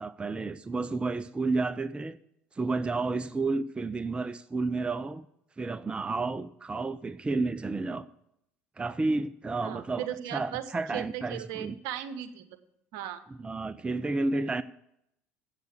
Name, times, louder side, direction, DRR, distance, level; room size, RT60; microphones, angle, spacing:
voice 1, 0.0-2.2 2.5-5.3 5.6-8.1 8.8-10.1 10.3-11.8 13.4-14.6, right 3 dB, 15° right, 0.5 m, -31 dB
voice 2, 9.6-10.6 10.9-12.5 12.9-13.2, right 11 dB, 65° right, 1.0 m, -37 dB
8.1 x 8.1 x 8.2 m
hypercardioid pair, 70°, 6 cm